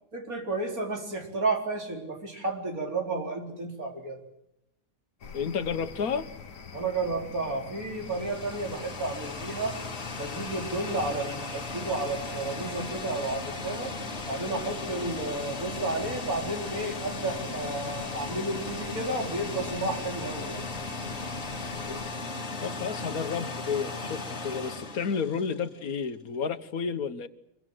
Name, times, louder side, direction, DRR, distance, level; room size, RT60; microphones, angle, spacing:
voice 1, 0.1-4.2 6.7-9.8 10.1-13.9 14.3-20.7, right 2 dB, 80° right, 2 dB, 4.7 m, -32 dB
sound 1, 5.2-22.1, left 5 dB, 70° left, 1.7 m, -44 dB
voice 2, 5.3-6.3 22.6-27.3, left 6 dB, 90° left, 11 dB, 1.7 m, -31 dB
sound 2, 7.7-25.9, left 3 dB, 50° left, 2.1 m, -37 dB
25.5 x 22.5 x 7.8 m, 0.83 s
omnidirectional pair, 1.5 m